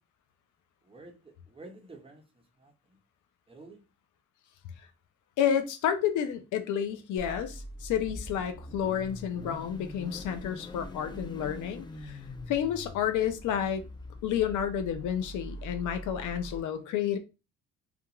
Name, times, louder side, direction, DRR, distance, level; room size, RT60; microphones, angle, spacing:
voice 1, 0.8-3.0 3.5-3.8, right 2 dB, 20° right, 0.8 m, -51 dB
voice 2, 5.4-12.2 12.5-13.8 14.2-17.2, left 9 dB, 80° left, 0.5 m, -30 dB
Car / Idling / Accelerating revving vroom, 7.2-16.6, left 1 dB, 15° left, 0.4 m, -43 dB
2.4 x 2.4 x 2.9 m
cardioid pair, 90°, 30 cm